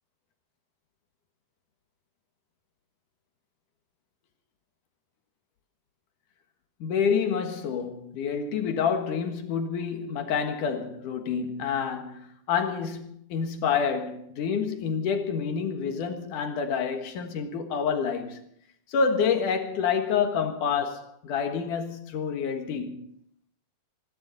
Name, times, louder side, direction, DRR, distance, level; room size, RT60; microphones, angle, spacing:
voice 1, 6.8-18.4 18.9-23.2, left 6 dB, 65° left, 2.8 m, -28 dB
27.0 x 12.0 x 4.0 m
omnidirectional pair, 4.4 m